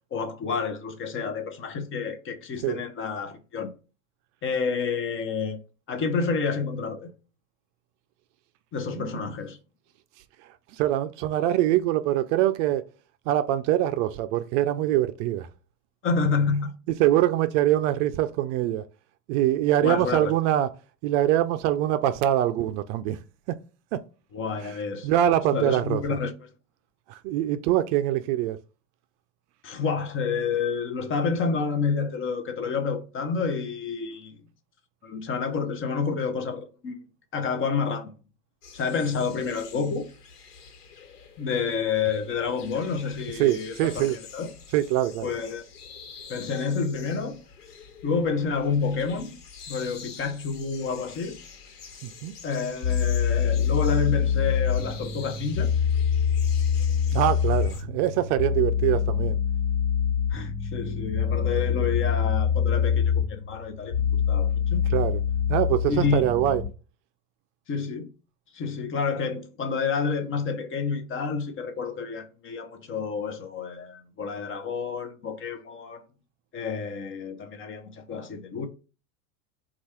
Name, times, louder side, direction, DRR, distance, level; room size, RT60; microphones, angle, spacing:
voice 1, 0.1-3.7 4.4-5.6 5.9-7.1 8.7-9.6 16.0-16.7 19.8-20.3 24.3-25.1 25.5-26.5 29.6-34.3 35.0-37.0 37.3-38.1 38.7-40.1 41.4-44.5 45.2-45.6 46.3-47.4 48.0-49.3 49.7-51.4 52.4-55.7 60.3-64.8 65.9-66.2 67.7-68.1 68.5-76.0 76.5-78.7, left 5 dB, 25° left, 0.7 m, -29 dB
voice 2, 10.7-12.8 13.3-15.5 16.9-18.8 19.3-20.7 21.0-23.2 23.5-23.6 23.9-24.0 24.6-24.8 25.0-26.2 27.1-28.6 43.4-44.2 44.7-45.3 52.0-52.3 57.1-59.4 64.9-65.2 65.5-66.6, right 13 dB, 50° right, 0.5 m, -24 dB
sound 1, 38.6-57.8, left 6 dB, 90° left, 1.2 m, -46 dB
sound 2, 52.8-66.7, left 8 dB, 60° left, 1.3 m, -25 dB
4.5 x 2.4 x 4.3 m
supercardioid pair, 115°, 46 cm